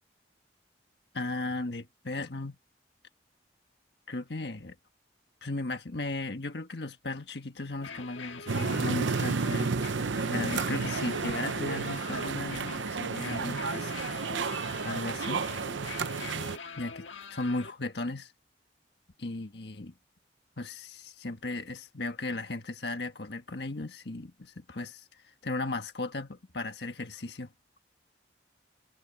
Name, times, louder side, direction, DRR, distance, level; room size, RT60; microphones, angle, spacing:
voice 1, 1.1-2.6 4.1-4.8 5.4-14.0 14.8-15.5 16.8-18.3 19.2-19.9 20.6-27.5, left 2 dB, 60° left, 1.5 m, -36 dB
sound 1, 7.7-17.7, left 4 dB, 90° left, 1.6 m, -44 dB
sound 2, 8.5-16.6, right 4 dB, 80° right, 0.7 m, -31 dB
head